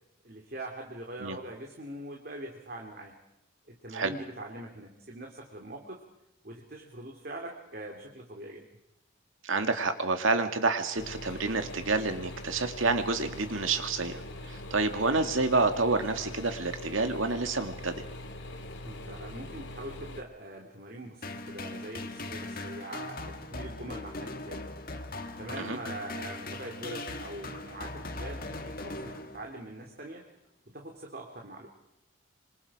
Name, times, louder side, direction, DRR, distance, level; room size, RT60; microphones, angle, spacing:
voice 1, 0.2-3.1 3.7-6.0 6.4-8.7 18.8-24.7 25.4-30.3 30.7-31.7, right 1 dB, 50° right, 1 dB, 2.9 m, -43 dB
voice 2, 9.4-14.2 14.5-18.0 25.6-25.8, right 3 dB, 80° right, 7 dB, 2.2 m, -28 dB
sound 1, 11.0-20.2, left 1 dB, 65° left, 2.7 m, -42 dB
sound 2, 21.2-29.7, left 2 dB, 45° left, 1.9 m, -39 dB
26.5 x 26.0 x 5.0 m, 0.85 s
head